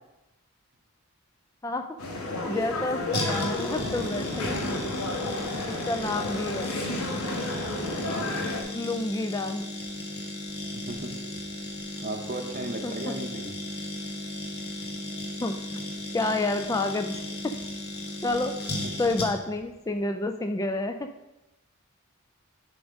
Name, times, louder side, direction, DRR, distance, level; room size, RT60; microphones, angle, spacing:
sound 1, 2.0-8.6, left 2 dB, 80° left, 1.3 m, -31 dB
voice 1, 2.5-4.6 5.6-6.7 7.8-7.9 8.7-9.6 12.8-13.1 15.4-15.8 16.1-17.6 18.2-18.6 19.0-21.1, left 2 dB, 15° left, 7 dB, 0.3 m, -29 dB
sound 2, 3.1-19.6 19.9-20.0, left 1 dB, 45° left, 1.4 m, -36 dB
voice 2, 7.8-8.3 10.7-11.2 12.0-13.5 18.8-18.9, right 2 dB, 40° right, 4 dB, 0.7 m, -36 dB
10.5 x 3.6 x 5.1 m, 0.98 s
head